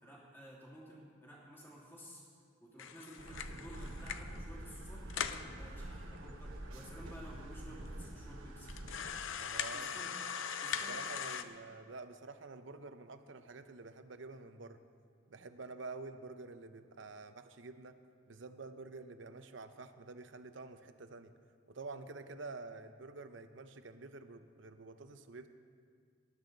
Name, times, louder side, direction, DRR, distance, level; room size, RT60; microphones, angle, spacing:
voice 1, 0.0-2.2 2.6-8.8 9.0-9.3 9.7-10.3 10.6-11.4, equal, 10° left, -5 dB, 2.7 m, -53 dB
sound 1, 2.8-4.4 4.8-4.9 5.1-5.5 6.1-6.2 6.5-6.6 7.3-7.4 7.8-7.9 8.7-11.4, left 7 dB, 80° left, 0.6 m, -40 dB
sound 2, 3.2-9.1, right 1 dB, 90° right, 1.1 m, -47 dB
voice 2, 9.4-10.0 10.9-14.8 15.3-18.0 18.3-21.3 21.7-25.5, right 3 dB, 70° right, 9 dB, 0.7 m, -48 dB
19.0 x 11.0 x 3.9 m, 2.1 s
head